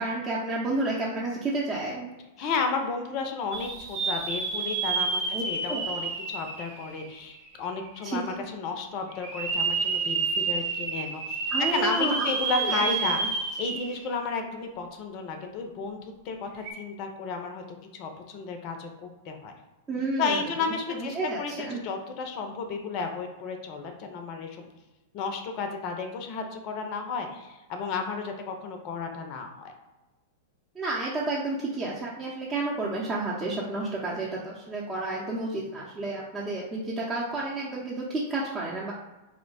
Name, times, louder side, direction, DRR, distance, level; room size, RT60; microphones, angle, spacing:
voice 1, 0.0-2.1 2.4-2.5 5.3-5.4 5.7-5.8 8.0-8.2 11.5-13.3 13.6-13.7 19.9-20.5 20.9-21.8 30.7-38.9, right 2 dB, 20° right, -6 dB, 0.7 m, -31 dB
voice 2, 2.4-17.6 17.9-19.5 20.2-24.7 25.1-29.7, left 4 dB, 45° left, 4 dB, 0.5 m, -33 dB
sound 1, 3.5-7.5 8.0-8.1 9.2-14.1 14.5-14.6 16.5-16.7, right 4 dB, 50° right, 0.9 m, -29 dB
2.9 x 2.1 x 4.0 m, 1.1 s
hypercardioid pair, 105°, 0 cm